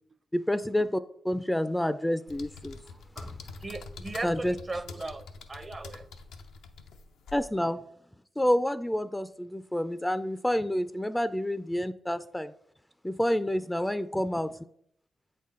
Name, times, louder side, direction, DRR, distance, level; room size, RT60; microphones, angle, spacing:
voice 1, 0.3-2.8 3.2-3.4 4.2-4.5 7.3-7.8 8.4-12.5 13.0-14.6, left 1 dB, 10° left, 12 dB, 0.4 m, -29 dB
sound 1, 2.3-7.5, left 4 dB, 85° left, 0.5 m, -45 dB
voice 2, 3.6-6.1, right 2 dB, 35° right, 12 dB, 0.6 m, -38 dB
8.2 x 4.3 x 3.7 m, 0.69 s
supercardioid pair, 45°, 0 cm